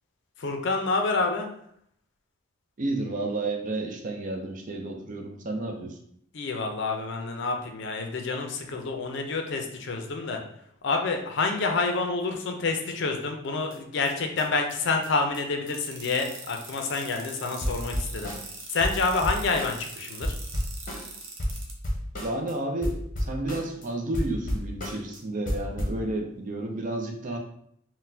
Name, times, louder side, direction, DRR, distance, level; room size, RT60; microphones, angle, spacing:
voice 1, 0.4-1.5 6.3-10.4 10.8-18.3 18.7-20.3, left 3 dB, 60° left, 4 dB, 0.5 m, -28 dB
voice 2, 2.8-6.0 22.2-27.4, right 2 dB, 40° right, 3 dB, 0.4 m, -31 dB
sound 1, 13.7-13.8 14.1-14.2 14.4-14.5 14.7-14.8 15.0-15.1 15.3-15.4 15.7-15.8 16.0-16.1 16.3-16.4 16.6-17.0 17.3-17.4 17.6-20.0 20.2-22.5 22.8-23.9 24.1-25.2 25.5-26.0, equal, 40° left, 0.8 m, -32 dB
sound 2, 15.7-21.7, right 4 dB, 75° right, 0.7 m, -42 dB
3.9 x 2.1 x 2.7 m, 0.69 s
head